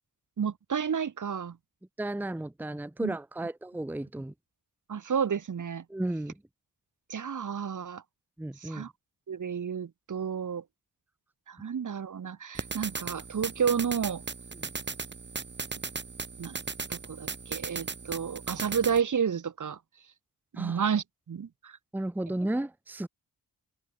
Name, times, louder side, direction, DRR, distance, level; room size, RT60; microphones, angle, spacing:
voice 1, 0.4-1.6 3.0-3.1 4.9-5.8 7.1-8.0 8.6-8.9 9.3-10.6 11.5-14.2 16.4-16.6 16.9-19.8 20.5-21.8, right 7 dB, 50° right, 1.2 m, -31 dB
voice 2, 2.0-4.3 5.9-6.3 8.4-8.9 14.6-14.7 20.6-20.8 21.9-23.1, right 1 dB, 5° right, 0.8 m, -33 dB
sound 1, 12.5-19.0, right 4 dB, 30° right, 1.0 m, -37 dB
wide cardioid pair, 100°, 38 cm